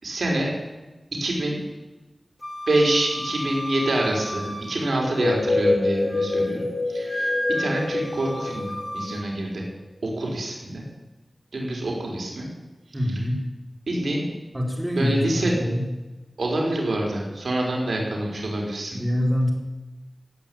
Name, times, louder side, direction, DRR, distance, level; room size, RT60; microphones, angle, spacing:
voice 1, 0.0-0.5 1.2-1.6 2.7-7.3 7.6-9.7 10.0-10.8 11.5-12.5 13.9-14.3 14.9-15.5 16.4-19.0, right 1 dB, 85° right, -1 dB, 4.3 m, -26 dB
Wind instrument woodwind instrument, 2.4-5.4 5.8-6.5 7.1-9.3, left 1 dB, 25° left, 2.6 m, -33 dB
sound 1, 5.0-9.6, left 2 dB, 50° left, 3.4 m, -26 dB
voice 2, 12.9-13.4 14.5-15.8 18.9-19.5, equal, 15° right, -1 dB, 4.4 m, -25 dB
17.5 x 8.6 x 8.9 m, 1.1 s
wide cardioid pair, 65°, 0 cm